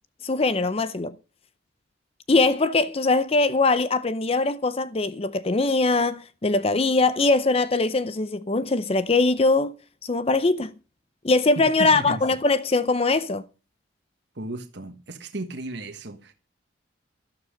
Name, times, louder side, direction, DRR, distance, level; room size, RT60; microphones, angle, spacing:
voice 1, 0.2-1.1 2.3-9.7 10.0-10.7 11.2-13.4, left 3 dB, 30° left, 0.6 m, -22 dB
voice 2, 11.6-12.2 14.3-16.3, right 2 dB, 60° right, 1.4 m, -34 dB
12.5 x 11.5 x 5.2 m
head